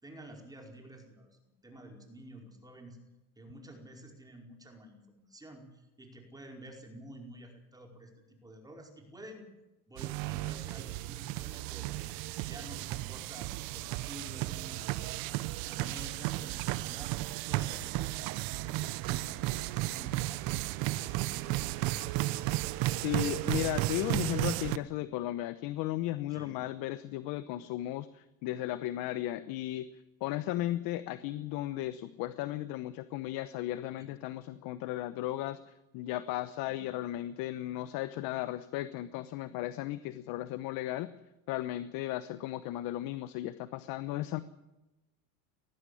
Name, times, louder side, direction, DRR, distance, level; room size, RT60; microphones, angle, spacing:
voice 1, 0.0-3.0 3.4-9.5 9.9-12.2 12.5-15.4 15.7-21.9 26.3-26.6 34.0-34.1 36.7-36.8, right 1 dB, 10° right, 2 dB, 5.0 m, -50 dB
sound 1, 10.0-24.8, right 18 dB, 55° right, 1.0 m, -34 dB
voice 2, 23.0-29.9 30.2-41.1 41.5-44.4, left 15 dB, 50° left, 13 dB, 1.0 m, -35 dB
19.0 x 15.0 x 9.9 m, 0.98 s
supercardioid pair, 130°, 44 cm